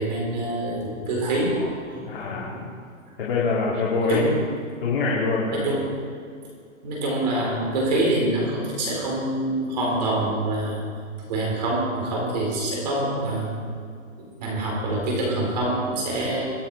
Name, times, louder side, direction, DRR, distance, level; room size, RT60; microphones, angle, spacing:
voice 1, 0.0-2.6 4.1-4.4 5.5-5.9 6.8-10.8 11.3-13.6 14.2-16.5, right 1 dB, 30° right, -2 dB, 4.5 m, -26 dB
voice 2, 2.1-2.5 3.2-4.3 4.8-5.7, left 3 dB, 45° left, -6 dB, 2.9 m, -24 dB
23.5 x 8.2 x 4.9 m, 2.2 s
hypercardioid pair, 180°, 40 cm